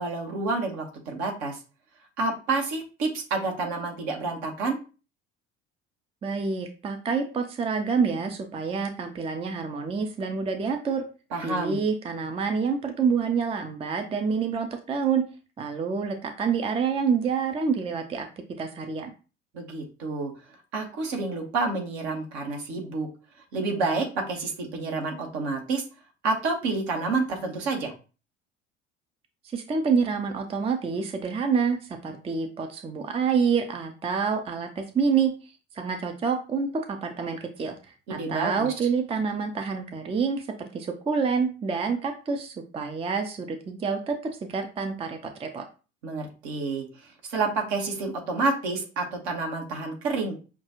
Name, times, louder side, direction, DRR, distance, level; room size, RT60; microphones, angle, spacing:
voice 1, 0.0-1.6 2.2-4.8 11.3-11.8 19.5-20.3 20.7-23.1 23.5-25.8 26.2-27.9 38.1-38.5 46.0-46.9 47.3-50.3, right 3 dB, 60° right, 1 dB, 1.3 m, -29 dB
voice 2, 6.2-11.0 11.4-15.2 15.6-18.3 18.6-19.1 29.4-35.3 35.7-45.7, right 5 dB, 15° right, 6 dB, 0.5 m, -27 dB
5.8 x 2.4 x 2.9 m, 0.34 s
figure-of-eight pair, 60°, 36 cm